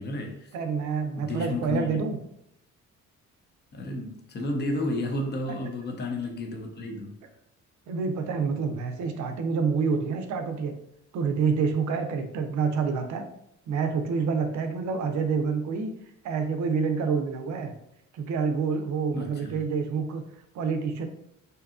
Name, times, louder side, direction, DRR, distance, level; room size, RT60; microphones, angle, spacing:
voice 1, 0.0-0.5 1.2-2.0 3.7-7.1 19.1-19.6, left 1 dB, 35° left, 0.6 m, -32 dB
voice 2, 0.5-2.2 7.9-10.7 11.1-13.3 13.7-15.9 16.2-17.7 18.1-20.2 20.5-21.1, right 5 dB, 70° right, 0.5 m, -27 dB
2.7 x 2.3 x 2.4 m
cardioid pair, 90°, 30 cm